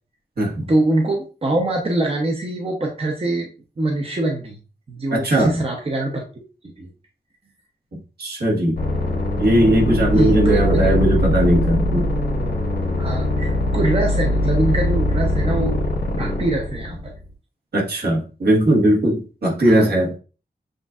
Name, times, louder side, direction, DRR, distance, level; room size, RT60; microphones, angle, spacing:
voice 1, 0.7-3.5 3.8-4.6 4.9-6.9 10.1-11.0 13.0-15.8 16.2-17.1 19.6-19.9, right 2 dB, 35° right, 1 dB, 0.7 m, -23 dB
voice 2, 5.1-5.6 7.9-8.8 9.4-12.1 17.7-20.1, right 1 dB, 70° right, -2 dB, 1.5 m, -18 dB
sound 1, 8.8-17.2, left 1 dB, 80° left, 1.5 m, -21 dB
7.6 x 2.6 x 2.4 m, 0.35 s
wide cardioid pair, 110°, 17 cm